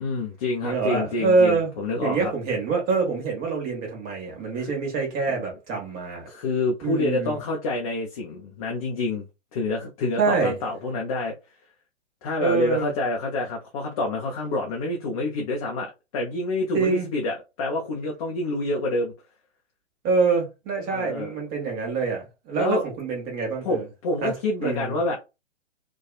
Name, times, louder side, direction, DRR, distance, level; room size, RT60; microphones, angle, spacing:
voice 1, 0.0-2.3 4.6-4.7 6.3-9.2 9.5-11.3 12.2-19.1 20.9-21.3 22.6-22.9 23.6-25.2, left 2 dB, 30° left, 0.5 m, -27 dB
voice 2, 0.6-1.7 2.0-6.3 6.8-7.4 10.2-10.6 12.4-12.9 16.7-17.1 20.0-23.9 24.2-24.3 24.6-25.0, right 4 dB, 25° right, 1.0 m, -25 dB
2.7 x 2.3 x 2.4 m
figure-of-eight pair, 120°, 37 cm